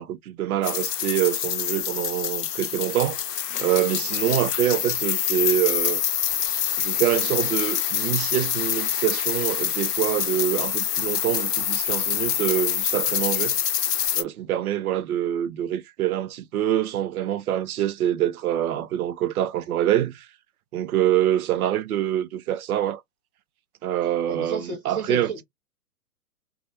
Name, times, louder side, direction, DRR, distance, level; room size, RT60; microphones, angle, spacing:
voice 1, 0.0-3.2 3.6-6.0 6.8-13.6 14.2-20.3 20.7-23.0 23.8-25.3, right 12 dB, 65° right, 0.5 m, -25 dB
sound 1, 0.6-14.2, left 10 dB, 75° left, 0.6 m, -26 dB
voice 2, 24.3-25.4, right 4 dB, 10° right, 0.6 m, -32 dB
2.3 x 2.0 x 2.7 m
figure-of-eight pair, 120°, 47 cm